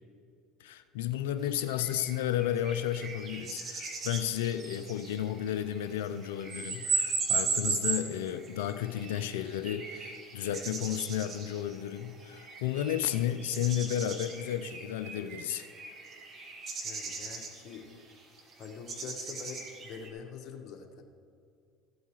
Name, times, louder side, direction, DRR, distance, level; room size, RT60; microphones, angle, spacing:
voice 1, 0.6-15.7, left 10 dB, 80° left, 10 dB, 0.4 m, -33 dB
sound 1, 1.4-20.1, right 4 dB, 40° right, 1.8 m, -37 dB
voice 2, 16.8-17.9 18.6-21.0, left 6 dB, 50° left, 3 dB, 1.2 m, -45 dB
14.5 x 8.1 x 3.1 m, 2.4 s
hypercardioid pair, 75°, 0 cm